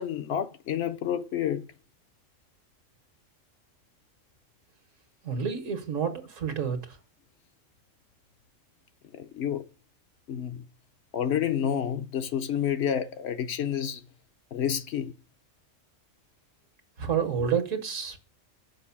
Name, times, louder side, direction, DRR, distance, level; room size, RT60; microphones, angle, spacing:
voice 1, 0.0-1.7 9.1-9.7 10.3-10.6 11.1-14.0 14.5-15.1, left 9 dB, 65° left, 0.8 m, -29 dB
voice 2, 5.2-7.0 17.0-18.2, right 7 dB, 80° right, 1.7 m, -29 dB
6.7 x 5.1 x 7.0 m
omnidirectional pair, 1.3 m